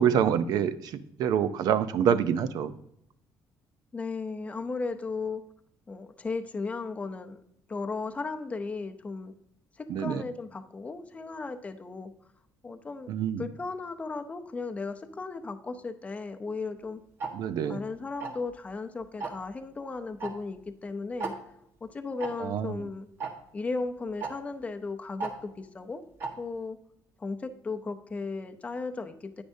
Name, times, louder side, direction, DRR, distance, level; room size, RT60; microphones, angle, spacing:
voice 1, 0.0-2.7 9.9-10.2 13.1-13.5 17.3-17.8 22.4-22.7, right 8 dB, 65° right, 12 dB, 0.6 m, -26 dB
voice 2, 3.9-5.4 5.9-7.4 7.7-9.3 9.8-12.1 12.6-13.1 13.4-17.0 17.6-21.3 21.8-23.1 23.5-26.0 26.4-26.8 27.2-29.4, left 4 dB, 20° left, 7 dB, 0.6 m, -35 dB
Tick-tock, 17.2-17.3 18.2-18.5 19.2-19.5 20.2-20.3 20.6-20.7 21.2-21.3 22.2-22.3 23.2-23.3 24.2-24.3 25.2-25.3 26.2-26.3, right 4 dB, 35° right, 1.3 m, -33 dB
9.8 x 9.6 x 2.7 m, 0.74 s
cardioid pair, 155°, 7 cm